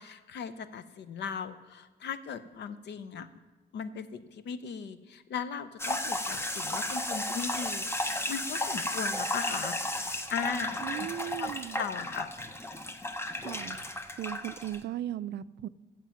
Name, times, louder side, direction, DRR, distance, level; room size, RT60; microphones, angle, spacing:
voice 1, 0.0-3.3 3.7-9.8 10.3-11.1 11.4-11.5 11.8-12.3, left 6 dB, 75° left, 0.7 m, -38 dB
sound 1, 5.8-14.8, left 1 dB, 15° left, 0.8 m, -34 dB
voice 2, 10.8-11.9 13.4-15.7, right 12 dB, 70° right, 0.4 m, -37 dB
14.5 x 7.5 x 5.7 m
cardioid pair, 130°, 18 cm